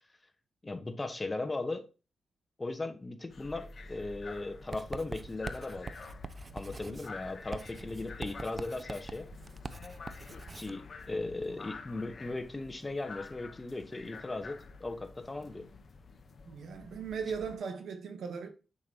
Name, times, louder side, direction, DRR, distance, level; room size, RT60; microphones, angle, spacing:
voice 1, 0.6-1.9 2.6-5.9 6.5-9.3 10.5-15.6, left 2 dB, 25° left, 1.1 m, -37 dB
sound 1, 3.3-17.6, left 4 dB, 60° left, 0.9 m, -49 dB
Writing, 4.7-10.8, right 3 dB, 40° right, 0.4 m, -44 dB
voice 2, 16.4-18.5, right 6 dB, 85° right, 1.0 m, -38 dB
6.5 x 5.3 x 2.8 m
cardioid pair, 60°, 0 cm